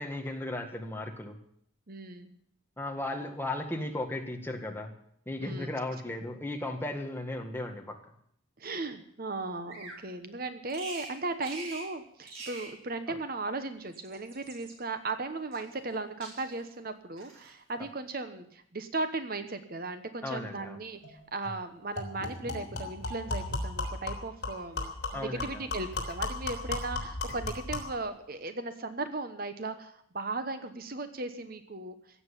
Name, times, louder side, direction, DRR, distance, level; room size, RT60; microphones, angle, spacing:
voice 1, 0.0-1.4 2.8-4.9 5.2-7.9 20.2-20.8 25.1-25.7, left 1 dB, 10° left, 3 dB, 1.7 m, -36 dB
voice 2, 1.9-2.3 5.4-5.7 8.6-31.9, right 3 dB, 45° right, 9 dB, 1.1 m, -37 dB
Bird vocalization bird call bird song, 9.7-10.0 10.7-11.1 11.4-11.9 12.2-12.7 13.8-14.7 15.5-16.0 16.2-16.7 17.2-17.5, right 3 dB, 75° right, 5.0 m, -44 dB
sound 1, 21.0-21.1 21.4-21.6 22.0-28.0, left 2 dB, 50° left, 3.6 m, -36 dB
16.0 x 7.9 x 10.0 m, 0.68 s
head